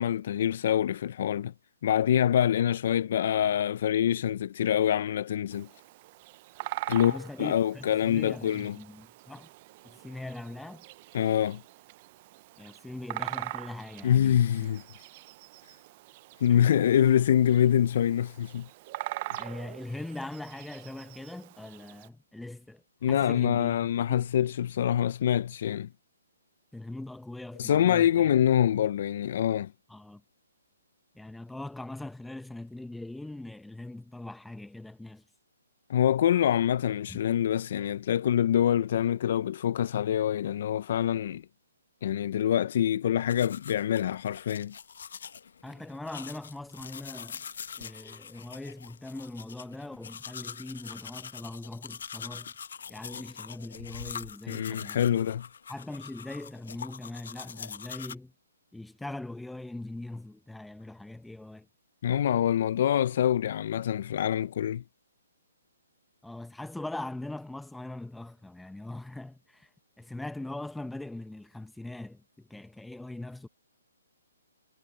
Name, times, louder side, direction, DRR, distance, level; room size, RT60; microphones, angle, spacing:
voice 1, 0.0-1.5 1.8-5.7 6.9-8.8 11.1-11.6 14.0-14.8 16.4-18.7 19.3-19.4 23.0-25.9 27.6-29.7 35.9-41.4 42.0-44.7 54.5-55.4 62.0-64.8, left 10 dB, 45° left, 0.4 m, -25 dB
Bird vocalization bird call bird song, 5.5-22.1, right 19 dB, 30° right, 0.5 m, -43 dB
voice 2, 6.9-9.5 9.8-10.8 12.6-14.7 16.5-16.7 19.4-23.8 26.7-28.3 29.9-30.2 31.1-35.2 37.1-37.2 45.6-47.4 47.8-52.5 52.9-55.2 55.7-58.3 58.7-61.7 66.2-69.7 70.0-73.5, left 2 dB, ahead, 1.0 m, -41 dB
sound 1, 43.3-58.1, left 7 dB, 65° left, 0.9 m, -44 dB
hypercardioid pair, 165°, 0 cm